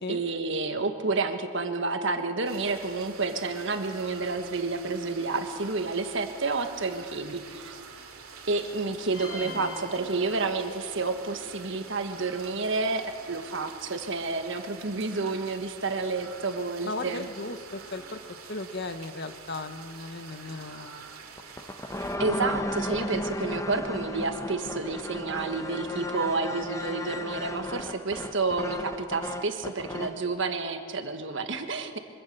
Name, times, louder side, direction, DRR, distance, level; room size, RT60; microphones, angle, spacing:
voice 1, 0.1-7.8 8.5-17.3 22.2-32.0, right 3 dB, 60° right, 7 dB, 1.5 m, -30 dB
sound 1, 2.4-22.2, right 5 dB, 80° right, 2.5 m, -46 dB
sound 2, 9.1-11.0, left 2 dB, 80° left, 3.9 m, -41 dB
voice 2, 16.8-18.2 18.5-21.1, left 2 dB, 50° left, 10 dB, 1.0 m, -36 dB
sound 3, 21.4-30.2, left 1 dB, 15° left, 0.8 m, -34 dB
24.5 x 16.5 x 6.8 m, 2.2 s
head